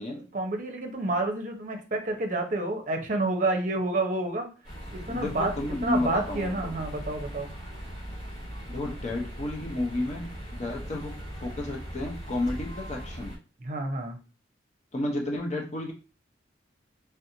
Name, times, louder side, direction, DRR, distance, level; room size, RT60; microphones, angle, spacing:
voice 1, 0.3-4.5 4.9-7.5 13.6-14.2, right 2 dB, 45° right, 3 dB, 0.6 m, -29 dB
sound 1, 4.6-13.4, equal, 55° left, 1.8 m, -39 dB
voice 2, 5.1-6.7 8.7-10.3 10.6-13.4 14.9-15.9, left 2 dB, 40° left, 0 dB, 0.5 m, -32 dB
3.4 x 2.5 x 2.8 m, 0.34 s
head